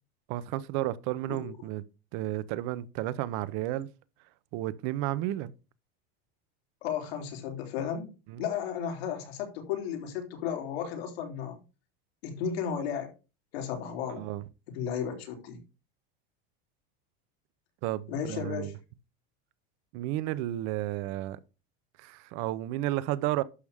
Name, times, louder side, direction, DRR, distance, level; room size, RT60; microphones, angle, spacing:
voice 1, 0.3-1.8 2.1-3.9 4.5-5.5 8.3-8.4 14.1-14.4 17.8-18.7 19.9-21.4 22.0-23.4, right 15 dB, 50° right, 0.8 m, -32 dB
voice 2, 6.8-8.1 8.4-11.6 12.2-13.1 13.5-14.3 14.7-15.6 18.1-18.7, left 8 dB, 85° left, 3.5 m, -34 dB
11.5 x 6.9 x 3.6 m
supercardioid pair, 160°, 30 cm